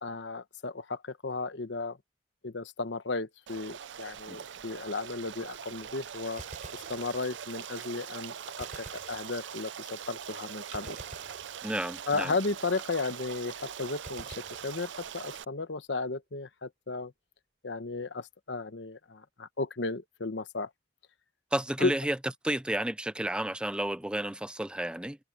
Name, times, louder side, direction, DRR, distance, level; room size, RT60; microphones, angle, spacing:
voice 1, 0.0-2.0 2.4-6.4 6.7-11.0 12.1-17.1 17.6-20.7 21.8-21.9, left 3 dB, 75° left, 1.2 m, -34 dB
Stream, 3.5-15.4, right 8 dB, 75° right, 0.6 m, -42 dB
Gunshot gunfire, 6.4-7.6 8.6-9.8 10.7-12.2 14.0-15.4, right 2 dB, 45° right, 5.1 m, -49 dB
voice 2, 11.6-12.3 21.5-22.2 22.4-25.2, right 1 dB, 5° right, 0.6 m, -31 dB
head